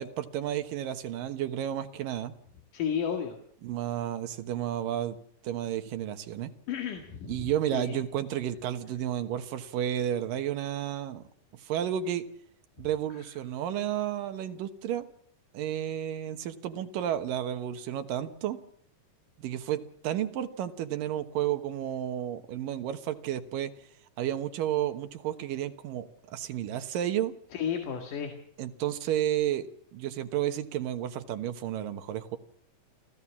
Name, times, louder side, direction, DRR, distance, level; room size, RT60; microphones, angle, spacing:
voice 1, 0.0-2.3 3.6-5.2 5.4-6.5 7.3-11.2 11.6-12.3 12.8-15.1 15.5-18.6 19.4-23.7 24.2-27.3 28.6-32.4, right 11 dB, 90° right, 9 dB, 3.0 m, -32 dB
voice 2, 2.7-3.4 6.7-8.0 27.5-28.3, left 8 dB, 75° left, 5 dB, 3.6 m, -33 dB
27.5 x 15.5 x 7.3 m, 0.65 s
omnidirectional pair, 3.8 m